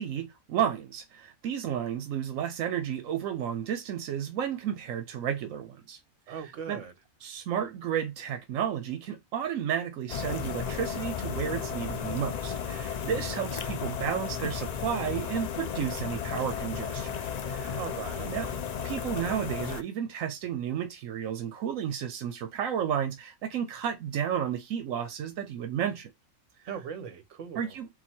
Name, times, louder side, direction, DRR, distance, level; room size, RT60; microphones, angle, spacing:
voice 1, 0.0-6.0 6.3-6.8 7.2-17.2 17.5-17.8 18.2-18.5 18.8-26.1 26.6-26.7 27.6-27.9, right 9 dB, 85° right, 1.0 m, -32 dB
voice 2, 6.3-6.9 17.8-18.3 26.7-27.7, right 7 dB, 70° right, 1.1 m, -39 dB
sound 1, 10.1-19.8, left 7 dB, 90° left, 0.3 m, -34 dB
3.9 x 2.4 x 4.3 m
omnidirectional pair, 1.4 m